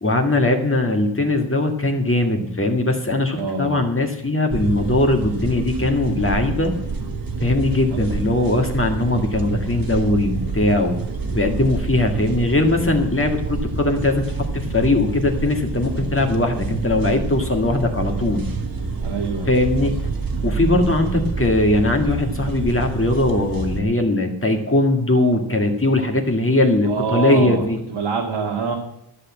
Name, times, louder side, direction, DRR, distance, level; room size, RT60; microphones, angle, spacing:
voice 1, 0.0-6.8 7.4-11.0 11.3-18.5 19.5-20.0 20.4-27.8, left 2 dB, 25° left, 3 dB, 1.9 m, -20 dB
voice 2, 3.3-3.8 19.0-19.5 26.8-27.6 27.9-28.8, right 4 dB, 70° right, -1 dB, 2.1 m, -25 dB
sound 1, 4.5-23.8, right 4 dB, 45° right, 1.6 m, -27 dB
13.0 x 6.7 x 8.6 m, 0.79 s
wide cardioid pair, 140°, 48 cm